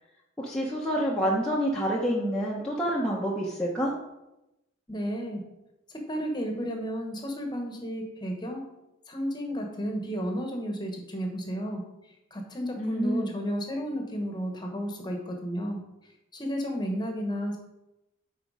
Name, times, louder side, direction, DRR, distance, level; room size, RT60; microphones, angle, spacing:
voice 1, 0.4-3.9 12.8-13.3, equal, 5° left, -5 dB, 0.9 m, -28 dB
voice 2, 4.9-5.4 5.9-8.7 9.1-11.8 12.3-15.8 16.3-17.6, equal, 20° left, 2 dB, 1.2 m, -32 dB
9.5 x 4.3 x 4.9 m, 0.92 s
head